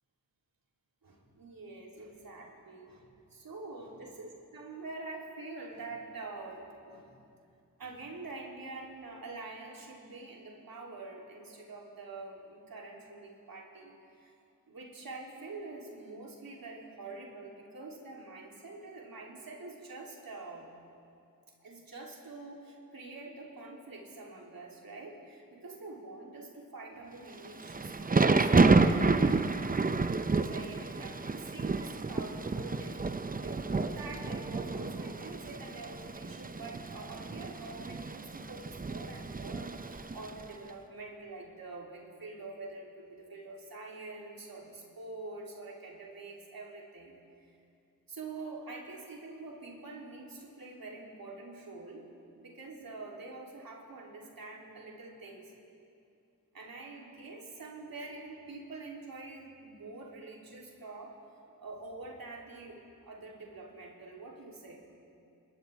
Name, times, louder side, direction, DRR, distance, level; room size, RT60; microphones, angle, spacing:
voice 1, 1.0-3.0 3.3-7.1 7.8-14.3 14.7-20.7 21.6-29.9 30.2-47.5 48.1-52.0 52.4-55.5 56.5-61.2 61.6-64.8, right 3 dB, 70° right, -2 dB, 3.3 m, -46 dB
Thunder / Rain, 27.4-40.4, right 3 dB, 25° right, 0.7 m, -30 dB
27.0 x 14.0 x 3.5 m, 2.5 s
cardioid pair, 45°, 36 cm